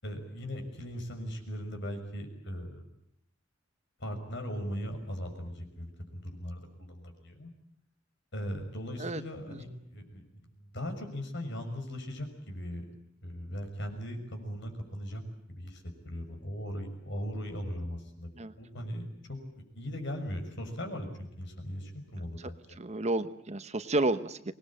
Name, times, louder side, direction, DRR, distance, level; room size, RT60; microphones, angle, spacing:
voice 1, 0.0-2.8 4.0-7.5 8.3-12.8 13.2-15.2 15.5-18.3 18.6-22.8, equal, 65° left, 5 dB, 6.3 m, -39 dB
voice 2, 22.8-24.5, right 2 dB, 35° right, 12 dB, 1.1 m, -31 dB
25.0 x 20.5 x 8.8 m, 0.75 s
head